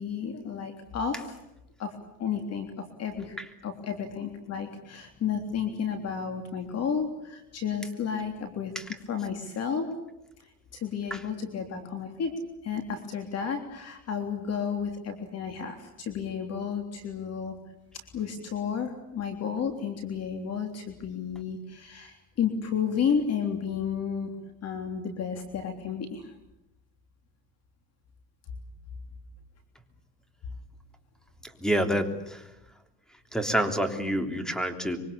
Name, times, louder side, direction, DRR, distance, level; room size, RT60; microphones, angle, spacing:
voice 1, 0.0-1.4 1.8-1.9 2.2-3.4 3.6-8.7 9.1-9.9 10.4-12.3 12.6-17.6 18.1-24.3 24.6-26.3, left 7 dB, 45° left, 5 dB, 3.4 m, -32 dB
voice 2, 31.6-32.4 33.3-35.0, right 1 dB, ahead, 7 dB, 3.3 m, -27 dB
25.0 x 24.5 x 8.6 m, 0.88 s
cardioid pair, 135°, 34 cm